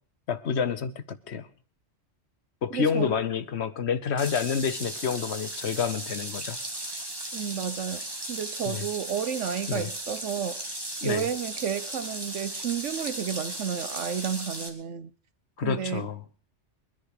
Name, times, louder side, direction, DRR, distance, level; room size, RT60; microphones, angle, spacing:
voice 1, 0.3-1.5 2.6-6.6 8.7-8.8 9.7-9.9 11.0-11.2 15.6-16.2, left 6 dB, 65° left, 1.2 m, -28 dB
voice 2, 2.7-3.1 7.3-10.7 11.0-15.1 15.6-16.1, right 8 dB, 75° right, 1.2 m, -32 dB
sound 1, 4.2-14.7, right 1 dB, 20° right, 1.9 m, -36 dB
22.5 x 10.5 x 4.8 m
omnidirectional pair, 1.3 m